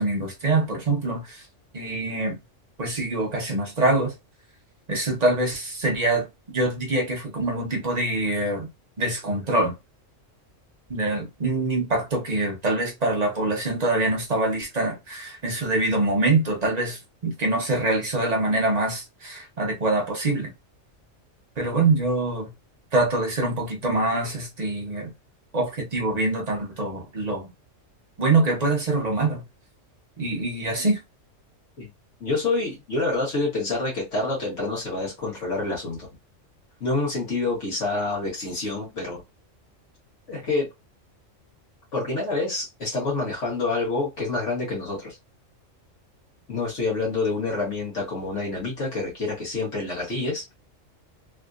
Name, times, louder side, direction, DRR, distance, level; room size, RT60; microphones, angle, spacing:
voice 1, 0.0-1.4 1.7-2.4 2.8-4.1 4.9-8.7 9.0-9.7 10.9-20.5 21.6-22.5 22.9-25.1 25.5-27.5 28.2-29.4 30.2-31.0, right 2 dB, 35° right, 1.0 m, -24 dB
voice 2, 32.2-36.1 36.8-39.2 40.3-40.7 41.9-45.2 46.5-50.4, left 3 dB, 65° left, 1.6 m, -27 dB
3.5 x 2.5 x 2.4 m
omnidirectional pair, 1.3 m